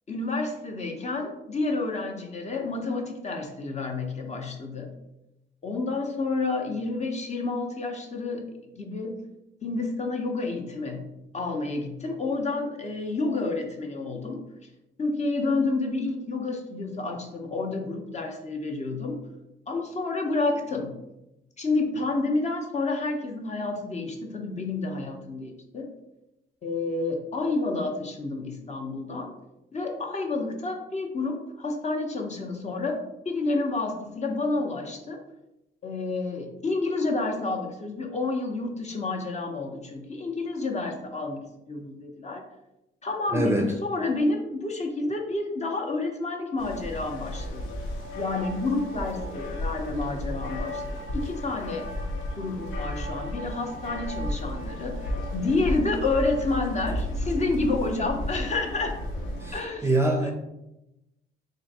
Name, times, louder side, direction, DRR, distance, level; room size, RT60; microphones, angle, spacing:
voice 1, 0.1-5.0 5.6-8.5 8.7-9.2 9.6-14.4 15.0-19.2 19.7-21.0 21.6-25.9 26.6-29.3 29.7-35.2 35.8-42.4 43.0-47.6 48.2-50.8 51.1-51.9 52.4-55.0 55.3-59.0 59.5-59.9 60.2-60.3, left 3 dB, 35° left, 2 dB, 0.8 m, -29 dB
voice 2, 43.3-43.7 59.4-60.3, right 1 dB, 15° right, 2 dB, 0.5 m, -24 dB
sound 1, 46.6-59.5, left 1 dB, 90° left, 0.7 m, -33 dB
3.1 x 2.6 x 4.1 m, 0.90 s
cardioid pair, 90°, 20 cm